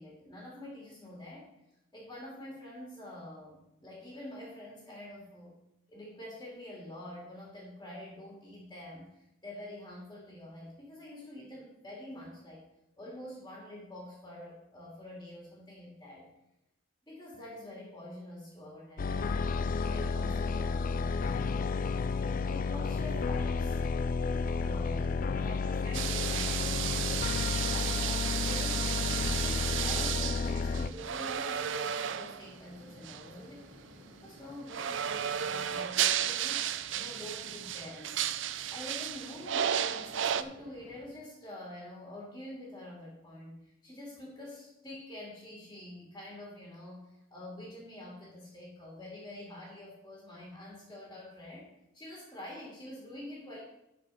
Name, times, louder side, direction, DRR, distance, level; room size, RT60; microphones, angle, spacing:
voice 1, 0.0-1.5 1.9-5.5 5.9-12.6 13.0-16.3 17.0-19.5 19.9-21.6 22.5-23.9 24.5-27.4 27.7-33.6 34.2-38.2 38.5-53.6, left 1 dB, 15° left, -5 dB, 2.6 m, -46 dB
sound 1, 19.0-30.9, left 4 dB, 40° left, 0.4 m, -31 dB
sound 2, 25.9-32.5 33.0-33.3 34.7-40.4, right 10 dB, 60° right, 0.5 m, -33 dB
sound 3, 28.3-41.1, equal, 85° right, 2.3 m, -57 dB
12.0 x 4.9 x 5.7 m, 0.87 s
head